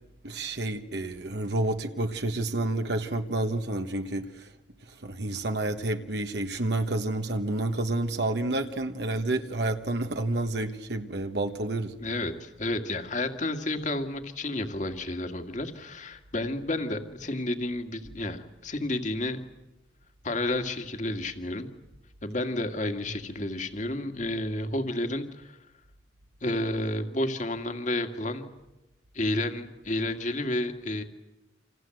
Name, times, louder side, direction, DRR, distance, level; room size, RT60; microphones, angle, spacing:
voice 1, 0.2-4.5 4.9-11.9, right 2 dB, 65° right, 1.4 m, -29 dB
voice 2, 12.0-19.4 20.2-21.7 22.2-25.6 26.4-28.5 29.1-31.0, left 1 dB, 40° left, 2.1 m, -31 dB
28.5 x 26.5 x 7.9 m
head